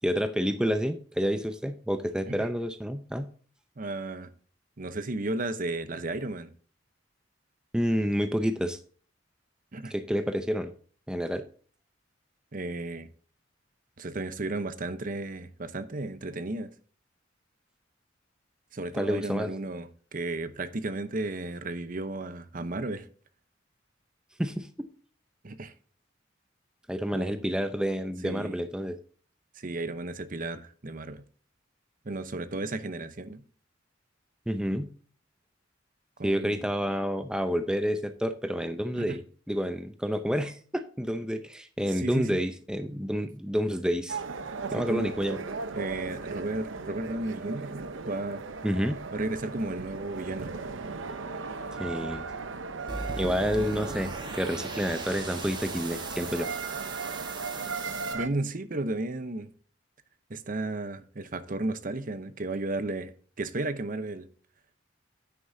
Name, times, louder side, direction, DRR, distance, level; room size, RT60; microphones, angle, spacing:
voice 1, 0.0-3.3 7.7-8.8 9.9-10.7 11.1-11.5 18.9-19.5 24.4-24.9 26.9-29.0 34.5-34.9 36.2-44.2 44.7-45.4 48.6-49.0 51.8-52.2 53.2-56.5, equal, 5° right, 0.6 m, -29 dB
voice 2, 3.8-4.3 4.8-6.5 9.7-9.9 12.5-13.1 14.0-16.7 18.7-23.1 25.4-25.7 27.1-27.4 28.2-28.6 29.6-31.2 32.0-33.4 36.2-36.6 39.0-39.2 41.9-42.4 44.8-45.1 45.7-48.4 49.1-50.5 58.1-59.5 60.3-63.1 63.4-64.3, right 2 dB, 45° right, 0.8 m, -34 dB
sound 1, 44.1-58.3, right 4 dB, 80° right, 0.8 m, -37 dB
sound 2, 52.9-58.1, right 3 dB, 25° right, 1.5 m, -39 dB
9.5 x 9.4 x 2.7 m
head